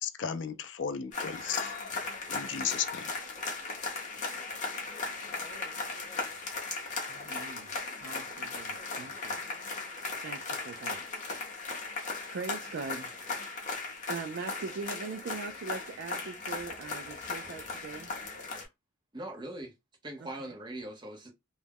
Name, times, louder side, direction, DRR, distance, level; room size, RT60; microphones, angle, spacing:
voice 1, 0.0-1.7 2.3-3.1, left 8 dB, 60° left, 0.4 m, -35 dB
sound 1, 1.1-18.6, left 3 dB, 40° left, 0.7 m, -37 dB
voice 2, 7.1-7.7 8.0-9.4 10.2-11.2 12.3-13.6 14.1-18.1 20.4-20.5, right 4 dB, 60° right, 0.3 m, -41 dB
voice 3, 19.1-19.7 20.0-21.3, right 1 dB, 20° right, 0.6 m, -41 dB
2.3 x 2.1 x 3.4 m
head